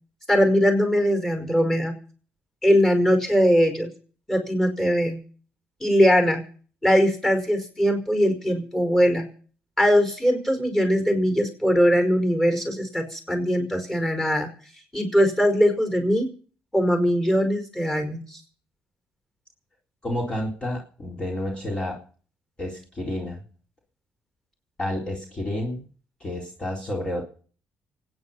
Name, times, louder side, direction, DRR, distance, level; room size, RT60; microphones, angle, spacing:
voice 1, 0.3-1.9 2.6-3.9 4.3-5.2 5.8-6.4 6.8-9.2 9.8-14.5 14.9-16.3 16.7-18.4, equal, 10° left, 6 dB, 4.9 m, -21 dB
voice 2, 20.0-22.0 22.6-23.4 24.8-25.9 26.2-27.2, left 1 dB, 25° left, -1 dB, 4.1 m, -30 dB
25.0 x 9.7 x 5.6 m, 0.43 s
cardioid pair, 110°, 4 cm